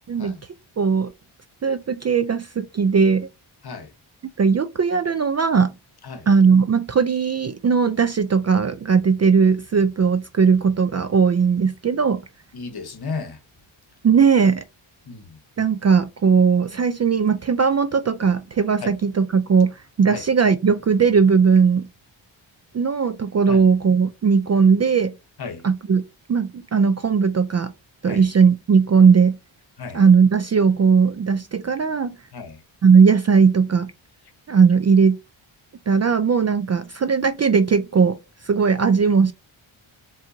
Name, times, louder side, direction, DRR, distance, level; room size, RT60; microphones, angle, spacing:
voice 1, 0.8-1.1 1.6-3.3 4.4-5.7 6.3-12.2 14.0-14.6 15.6-21.9 22.7-25.1 25.6-26.0 26.3-27.7 28.0-29.4 29.9-32.2 32.8-33.9 34.5-35.2 35.9-38.2 38.4-39.3, right 5 dB, 35° right, 0.4 m, -18 dB
voice 2, 12.5-13.4 15.1-15.4 18.8-18.9 20.1-20.2 23.5-23.6 25.4-25.6 28.0-28.3 29.8-30.0 32.3-32.6, left 4 dB, 50° left, 1.1 m, -34 dB
4.4 x 3.8 x 2.7 m
cardioid pair, 70°, 49 cm